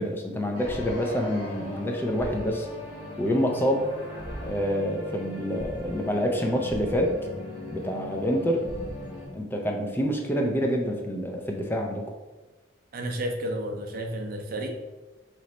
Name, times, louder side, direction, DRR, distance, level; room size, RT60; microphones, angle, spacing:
voice 1, 0.0-2.7 3.2-3.8 4.4-7.2 7.7-8.7 9.3-12.0, equal, 10° left, 1 dB, 0.4 m, -27 dB
sound 1, 0.5-9.3, left 1 dB, 30° left, 1.2 m, -38 dB
voice 2, 12.9-14.7, right 1 dB, 50° right, 3 dB, 0.5 m, -31 dB
3.1 x 3.0 x 3.8 m, 1.1 s
head